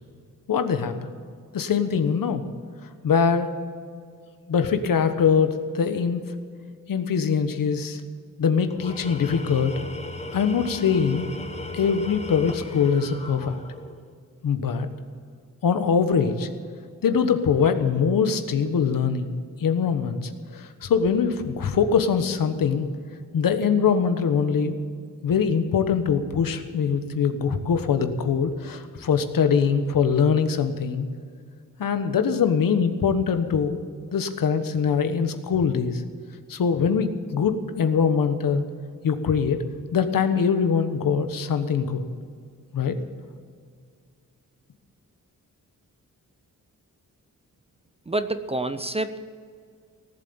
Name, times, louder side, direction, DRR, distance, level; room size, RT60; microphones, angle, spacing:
voice 1, 0.5-1.1 1.5-2.4 3.0-3.5 4.5-6.2 6.9-8.0 8.4-9.8 10.3-11.3 11.7-13.6 14.4-14.9 15.6-16.5 17.0-19.3 19.6-22.9 23.3-24.9 25.2-31.1 31.8-33.8 34.1-36.0 36.5-38.6 39.0-39.6 39.9-42.0 42.7-43.0, left 6 dB, 75° left, 9 dB, 1.2 m, -23 dB
Tools, 8.7-14.1, left 2 dB, 20° left, 1.2 m, -37 dB
voice 2, 48.1-49.2, right 2 dB, 20° right, 11 dB, 0.5 m, -27 dB
18.0 x 7.9 x 8.7 m, 2.1 s
wide cardioid pair, 165°, 34 cm